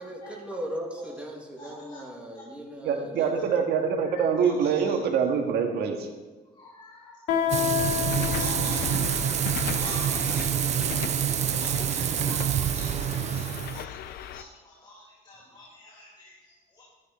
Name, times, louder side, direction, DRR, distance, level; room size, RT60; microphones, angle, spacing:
voice 1, 0.0-3.4, equal, 5° right, -1 dB, 2.7 m, -38 dB
voice 2, 1.6-2.0 2.3-2.4 4.4-4.9 6.5-7.2 7.5-7.9 8.4-9.2 9.6-16.8, left 2 dB, 25° left, -5 dB, 3.0 m, -46 dB
voice 3, 2.8-6.1, right 6 dB, 70° right, 4 dB, 1.9 m, -25 dB
Guitar, 7.3-12.7, left 10 dB, 85° left, 2.7 m, -32 dB
Frying (food), 7.5-13.8, right 10 dB, 40° right, 0.4 m, -27 dB
sound 1, 7.8-14.4, left 10 dB, 70° left, 0.7 m, -36 dB
13.0 x 10.5 x 4.5 m, 1.3 s
cardioid pair, 110°, 17 cm